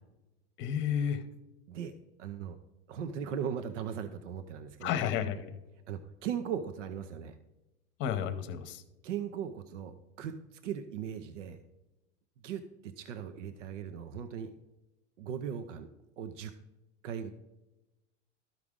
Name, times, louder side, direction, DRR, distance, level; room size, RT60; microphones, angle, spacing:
voice 1, 0.6-1.2 4.8-5.6 8.0-8.8, left 8 dB, 35° left, 11 dB, 0.8 m, -31 dB
voice 2, 2.2-2.6 2.9-4.9 5.9-7.4 9.0-11.6 12.4-14.6 15.2-15.9 16.2-16.5 17.0-17.3, right 8 dB, 85° right, 9 dB, 0.7 m, -38 dB
13.0 x 4.9 x 3.6 m, 1.0 s
supercardioid pair, 140°, 36 cm